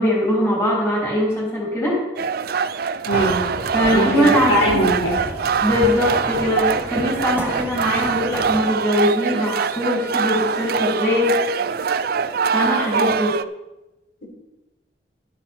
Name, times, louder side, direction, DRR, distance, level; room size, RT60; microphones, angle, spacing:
voice 1, 0.0-2.0 3.7-4.8 5.6-11.4 12.5-13.4, left 1 dB, 15° left, -5 dB, 3.6 m, -21 dB
sound 1, 2.2-13.4, right 6 dB, 55° right, 0.4 m, -23 dB
voice 2, 3.0-3.5 3.9-5.2, equal, 80° left, -3 dB, 4.4 m, -21 dB
sound 2, 3.1-8.6, equal, 10° right, 1.1 m, -32 dB
11.5 x 9.6 x 4.6 m, 1.0 s
head